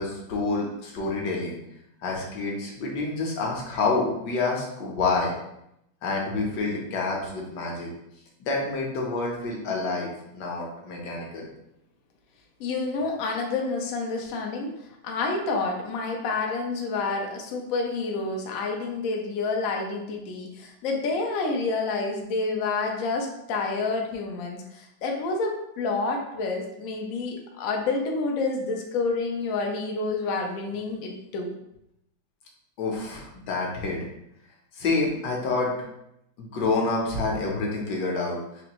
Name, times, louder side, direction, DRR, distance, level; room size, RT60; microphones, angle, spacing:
voice 1, 0.0-1.6 2.0-5.3 6.0-7.9 8.4-11.5 32.8-34.1 34.7-35.7 36.4-38.6, left 3 dB, 65° left, -2 dB, 1.3 m, -28 dB
voice 2, 12.6-14.7 15.0-31.5, left 3 dB, 85° left, 1 dB, 0.7 m, -28 dB
4.1 x 2.6 x 2.9 m, 0.80 s
omnidirectional pair, 2.2 m